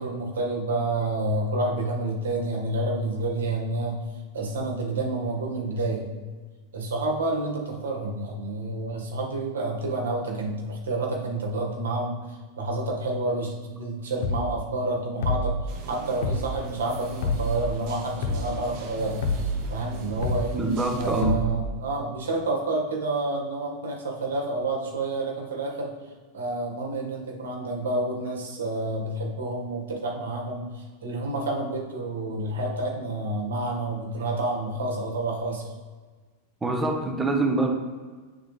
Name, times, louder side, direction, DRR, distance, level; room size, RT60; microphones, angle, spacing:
voice 1, 0.0-4.0 4.3-6.1 6.7-19.2 19.7-20.6 21.0-25.9 26.3-35.7, right 2 dB, 85° right, -1 dB, 1.8 m, -29 dB
sound 1, 14.2-14.5 15.2-15.6 16.2-16.5 17.2-17.6 18.2-18.5 19.2-19.6 20.2-20.5 21.2-21.6, left 2 dB, 70° left, 0.9 m, -26 dB
sound 2, 15.7-21.2, right 3 dB, 55° right, 0.9 m, -40 dB
voice 2, 20.5-21.4 36.6-37.7, right 2 dB, 15° right, 2 dB, 1.2 m, -25 dB
8.9 x 3.9 x 3.4 m, 1.4 s
hypercardioid pair, 120°, 0 cm